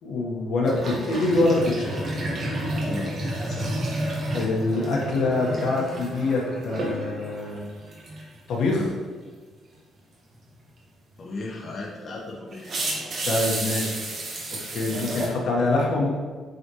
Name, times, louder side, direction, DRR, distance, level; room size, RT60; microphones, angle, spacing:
voice 1, 0.0-2.0 4.3-7.6 8.5-8.9 13.2-14.0 14.7-16.2, left 2 dB, 75° left, -2 dB, 1.4 m, -24 dB
sound 1, 0.6-7.6 7.9-8.3 11.7-11.8 12.5-15.3, right 1 dB, 50° right, 1.6 m, -31 dB
voice 2, 2.7-3.1 3.4-3.7 11.2-12.8 15.2-15.5, left 2 dB, 45° left, -3 dB, 1.2 m, -37 dB
8.0 x 4.1 x 3.1 m, 1.5 s
cardioid pair, 105°, 0 cm